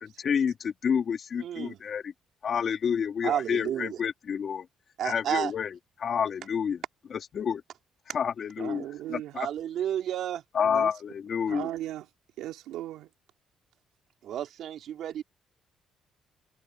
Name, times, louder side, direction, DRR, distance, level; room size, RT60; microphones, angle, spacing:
voice 1, 0.0-2.1 2.4-4.7 5.0-6.8 7.1-7.6 8.1-9.5 10.5-11.7, left 7 dB, 50° left, 2.9 m, -29 dB
voice 2, 1.4-1.8 3.2-4.0 5.0-5.5 9.3-10.4 14.2-15.2, right 10 dB, 70° right, 3.1 m, -31 dB
voice 3, 8.6-9.3 10.6-10.9 11.5-12.1 12.4-13.1, right 14 dB, 85° right, 2.7 m, -37 dB
cardioid pair, 100°, 0 cm